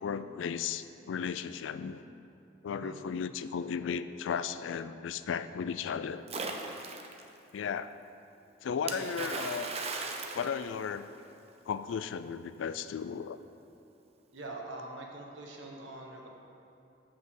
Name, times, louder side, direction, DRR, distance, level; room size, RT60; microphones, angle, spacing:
voice 1, 0.0-2.0 2.6-6.2 7.5-7.9 8.6-9.7 10.3-11.1 11.7-13.4, left 7 dB, 85° left, 12 dB, 0.3 m, -35 dB
Splash splatter, 6.3-7.2 8.9-11.3, right 3 dB, 35° right, 0.6 m, -38 dB
voice 2, 8.8-9.1 14.3-16.3, right 2 dB, 80° right, 0 dB, 1.2 m, -43 dB
7.2 x 6.0 x 6.6 m, 2.7 s
head